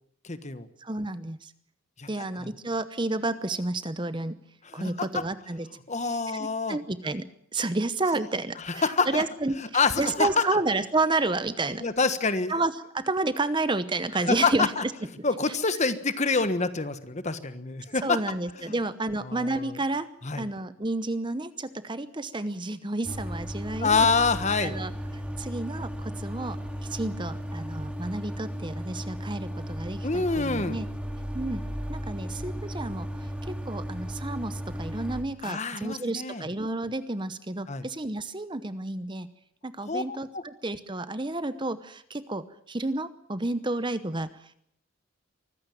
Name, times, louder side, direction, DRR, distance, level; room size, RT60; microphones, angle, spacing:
voice 1, 0.2-0.7 2.0-2.1 2.4-2.5 4.6-5.2 5.9-6.8 8.6-9.2 9.7-10.4 11.8-12.5 14.3-14.8 15.2-18.2 19.3-19.7 20.2-20.4 23.8-24.8 30.0-30.8 35.4-36.4 37.7-37.8 39.9-40.4, left 4 dB, 35° left, 12 dB, 1.3 m, -26 dB
voice 2, 0.8-1.5 2.1-4.4 4.7-5.7 6.0-7.3 7.5-11.9 12.5-14.9 15.5-15.6 18.0-20.1 20.4-24.1 24.6-24.9 25.4-30.9 31.3-31.6 31.9-39.3 39.6-44.6, right 2 dB, 20° right, 13 dB, 0.8 m, -31 dB
sound 1, 23.0-35.2, equal, 5° right, 2.6 m, -35 dB
24.0 x 15.5 x 9.2 m, 0.70 s
head